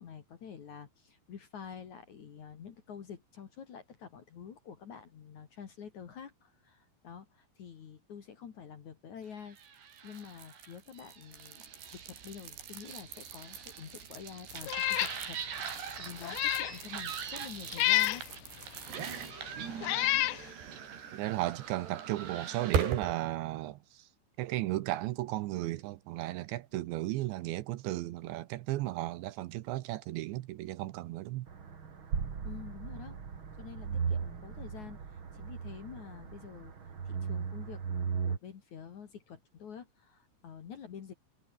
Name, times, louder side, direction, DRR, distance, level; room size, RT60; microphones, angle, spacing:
voice 1, 0.0-18.3 32.4-33.2 33.6-35.0 35.3-36.7 37.0-41.1, left 7 dB, 50° left, 2.6 m, -48 dB
sound 1, 9.5-23.2, right 7 dB, 60° right, 5.6 m, -40 dB
Meow, 14.7-15.2 15.6-15.7 16.2-16.8 17.7-18.2 19.1-19.2 19.8-20.4, left 17 dB, 80° left, 2.2 m, -29 dB
voice 2, 21.1-24.1 24.4-31.5 33.9-34.0, right 16 dB, 80° right, 3.0 m, -35 dB
sound 2, 31.5-38.4, right 6 dB, 35° right, 2.2 m, -37 dB
omnidirectional pair, 5.6 m